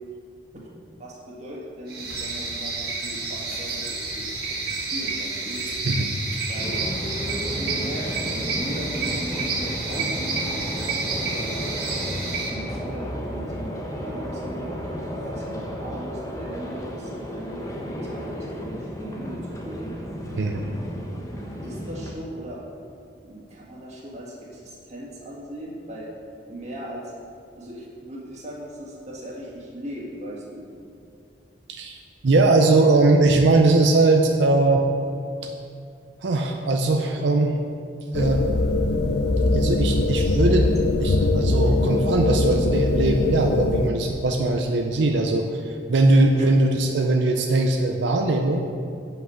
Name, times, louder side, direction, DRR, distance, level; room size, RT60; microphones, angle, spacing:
voice 1, 1.0-5.6 6.5-6.8 7.5-10.7 10.9-11.7 12.5-20.0 21.6-22.6 23.2-26.1 26.5-27.0 27.6-30.7 41.5-41.6 46.4-46.5 48.2-48.3, right 1 dB, 40° right, -4 dB, 1.7 m, -38 dB
sound 1, 1.9-12.5, right 3 dB, 60° right, 1.6 m, -30 dB
sound 2, 6.6-22.1, equal, 20° left, 0.9 m, -33 dB
voice 2, 20.3-20.8 31.7-34.8 35.4-35.5 36.2-37.6 38.1-38.4 39.5-40.7 41.0-48.6, right 2 dB, 90° right, 3 dB, 0.5 m, -20 dB
sound 3, 38.1-43.9, left 2 dB, 65° left, 0.5 m, -21 dB
8.0 x 5.5 x 5.6 m, 2.4 s
head